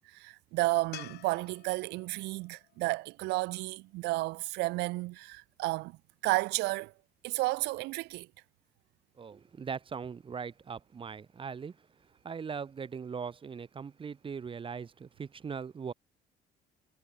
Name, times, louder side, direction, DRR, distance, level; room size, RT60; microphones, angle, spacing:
voice 1, 0.1-6.0 6.2-6.9 7.2-8.3, right 21 dB, 90° right, 0.8 m, -32 dB
sound 1, 0.9-4.2 7.4-7.5, left 15 dB, 75° left, 3.6 m, -52 dB
voice 2, 9.2-11.8 12.2-15.9, right 6 dB, 30° right, 1.2 m, -40 dB
cardioid pair, 110°, 17 cm